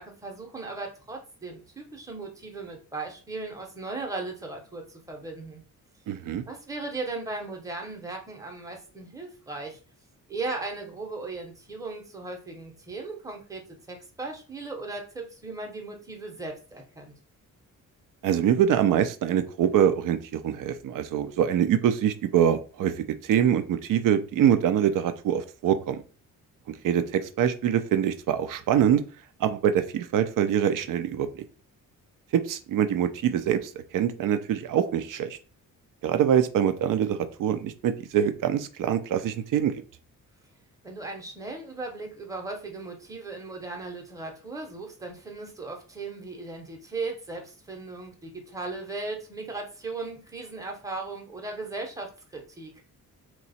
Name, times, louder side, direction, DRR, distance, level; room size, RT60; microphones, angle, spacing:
voice 1, 0.0-5.6 6.5-9.8 10.3-13.6 13.9-17.1 40.8-52.7, right 3 dB, 10° right, 1 dB, 0.8 m, -37 dB
voice 2, 6.1-6.4 18.2-26.0 26.8-29.0 29.4-31.4 32.3-35.4 36.0-39.8, right 9 dB, 70° right, 10 dB, 0.5 m, -24 dB
2.9 x 2.3 x 4.1 m, 0.36 s
cardioid pair, 125°, 33 cm